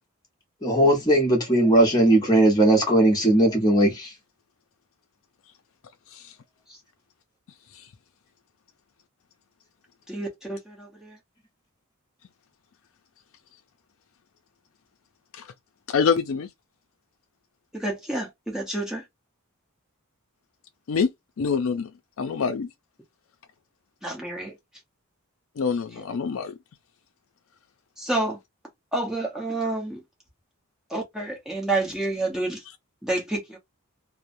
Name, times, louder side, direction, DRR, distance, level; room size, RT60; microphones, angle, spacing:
voice 1, 0.6-4.1, right 1 dB, 20° left, 1.0 m, -18 dB
voice 2, 10.1-11.2 17.7-19.0 24.0-24.5 25.9-26.0 28.0-28.4 28.9-30.0 30.9-32.6 33.0-33.6, right 2 dB, 5° right, 0.9 m, -29 dB
voice 3, 15.9-16.5 20.9-21.1 21.4-21.9 22.2-22.7 25.6-26.5, left 5 dB, 65° left, 0.4 m, -25 dB
3.1 x 2.0 x 2.6 m
head